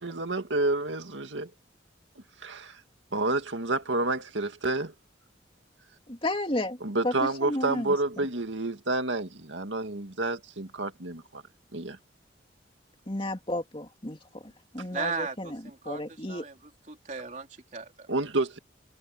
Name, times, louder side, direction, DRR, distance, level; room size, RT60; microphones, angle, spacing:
voice 1, 0.0-1.5 2.4-2.8 3.1-4.9 6.8-11.4 11.7-12.0 18.1-18.6, right 2 dB, 85° right, 2.0 m, -29 dB
voice 2, 6.1-6.8 7.0-7.9 13.1-16.5, left 1 dB, 30° left, 2.7 m, -33 dB
voice 3, 14.9-16.6 16.9-18.1, right 4 dB, 40° right, 3.6 m, -36 dB
head